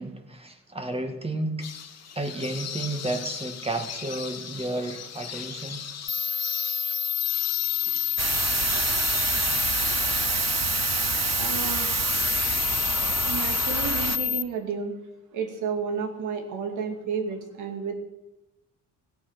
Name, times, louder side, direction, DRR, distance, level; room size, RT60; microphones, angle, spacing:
voice 1, 0.0-1.7 2.2-5.8 7.9-8.0, right 2 dB, 20° right, 5 dB, 2.1 m, -32 dB
sound 1, 1.6-10.3, left 7 dB, 55° left, 1.6 m, -39 dB
sound 2, 6.1-14.4, left 8 dB, 40° left, 0.7 m, -27 dB
sound 3, 8.2-14.2, right 10 dB, 60° right, 0.7 m, -28 dB
voice 2, 11.4-11.9 13.3-15.0 15.3-17.9, right 6 dB, 85° right, 4 dB, 2.5 m, -31 dB
17.5 x 8.2 x 6.2 m, 0.95 s
cardioid pair, 90°, 30 cm